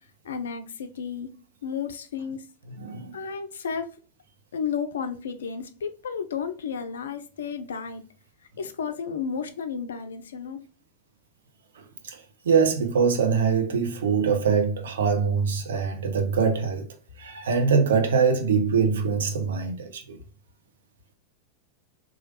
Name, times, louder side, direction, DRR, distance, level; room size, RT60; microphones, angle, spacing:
voice 1, 0.2-1.3 1.6-2.4 3.1-4.0 4.5-8.0 8.6-10.6, left 6 dB, 65° left, 0.4 m, -32 dB
voice 2, 2.8-3.1 11.8-16.9 17.2-20.2, right 5 dB, 65° right, 0.6 m, -23 dB
3.0 x 2.4 x 2.9 m
figure-of-eight pair, 90°, 0 cm